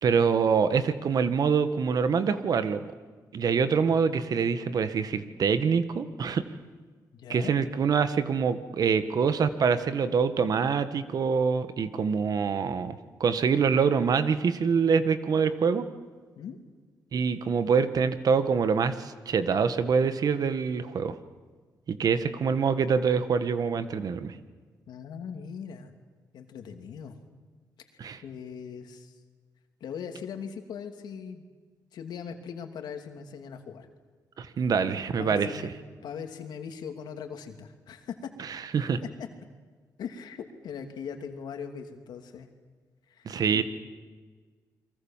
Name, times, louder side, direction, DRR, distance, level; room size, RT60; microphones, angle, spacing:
voice 1, 0.0-2.8 3.3-6.4 7.3-15.9 17.1-21.1 21.9-24.3 28.0-28.2 34.4-35.5 38.4-39.0 43.2-43.6, right 6 dB, 65° right, 11 dB, 1.7 m, -25 dB
voice 2, 7.1-7.5 16.4-16.6 24.9-25.9 26.3-27.2 28.2-29.1 29.8-31.4 31.9-33.9 35.2-35.7 36.0-38.3 39.0-39.1 40.0-42.5 43.1-43.6, left 7 dB, 85° left, 6 dB, 2.8 m, -40 dB
29.5 x 23.0 x 7.5 m, 1.5 s
cardioid pair, 90°, 7 cm